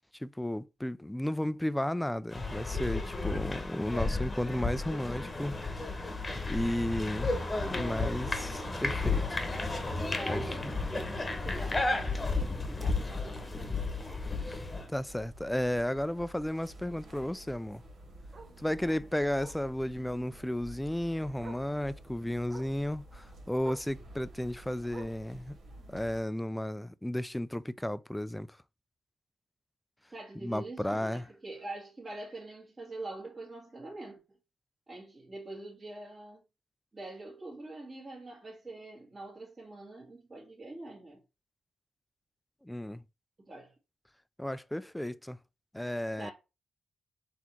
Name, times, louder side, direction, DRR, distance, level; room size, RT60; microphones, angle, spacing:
voice 1, 0.2-5.6 6.5-7.4 7.7-9.4 10.3-10.7 14.4-17.8 18.6-25.6 25.9-28.5 30.4-31.2 42.6-43.0 44.4-45.4 45.7-46.3, left 1 dB, 5° left, 0.3 m, -33 dB
sound 1, 2.3-14.9, left 3 dB, 25° left, 1.0 m, -33 dB
sound 2, 6.3-26.2, right 1 dB, 80° right, 1.6 m, -50 dB
voice 2, 10.2-14.2 18.8-18.9 30.1-34.2 34.9-36.4 36.9-41.2 43.4-43.7 46.2-46.3, right 2 dB, 30° right, 1.7 m, -45 dB
Bark, 18.3-18.6 19.4-19.7 20.9-21.0 21.4-21.7 22.5-22.8 23.6-23.9 24.9-25.3 26.3-26.4, right 3 dB, 45° right, 0.9 m, -49 dB
4.0 x 2.9 x 4.4 m
cardioid pair, 70°, 0 cm